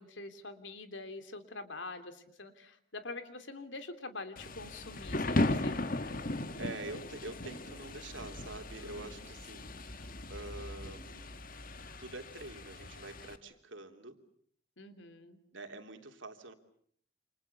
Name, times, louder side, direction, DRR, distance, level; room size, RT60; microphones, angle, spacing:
voice 1, 0.0-6.2 8.8-9.3 14.8-15.4, left 3 dB, 80° left, 9 dB, 3.2 m, -46 dB
Thunder / Rain, 4.4-13.4, left 2 dB, 50° left, 1.6 m, -37 dB
voice 2, 6.6-11.4 12.0-14.2 15.5-16.5, right 2 dB, 90° right, 6 dB, 3.3 m, -46 dB
29.5 x 27.5 x 7.1 m, 0.62 s
head